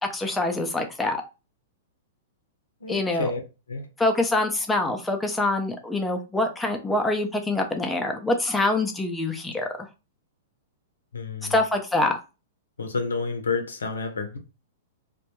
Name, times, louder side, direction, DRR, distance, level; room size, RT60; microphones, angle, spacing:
voice 1, 0.1-1.2 2.9-3.3 4.0-9.9 11.5-12.2, left 2 dB, 10° left, 0.4 m, -25 dB
voice 2, 2.8-3.4 3.7-3.8 11.1-11.5 12.8-14.4, left 4 dB, 85° left, 0.6 m, -29 dB
2.2 x 2.1 x 3.0 m
hypercardioid pair, 110°, 0 cm